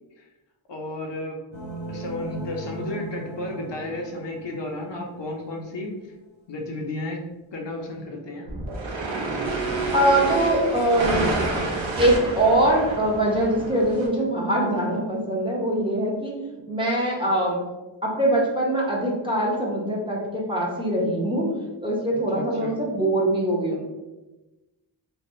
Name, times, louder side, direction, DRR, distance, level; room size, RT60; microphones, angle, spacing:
voice 1, 0.7-1.4 1.9-5.9 6.5-7.2 7.5-8.5 22.3-22.8, left 2 dB, 65° left, 1 dB, 0.6 m, -33 dB
sound 1, 1.5-5.5, right 2 dB, 80° left, 0.9 m, -37 dB
sound 2, 8.5-14.1, right 3 dB, 70° right, 0.6 m, -28 dB
voice 2, 9.9-11.3 12.0-16.3 16.7-17.6 18.0-23.9, right 1 dB, 10° right, -4 dB, 0.6 m, -23 dB
3.3 x 2.1 x 2.6 m, 1.1 s
wide cardioid pair, 100°, 47 cm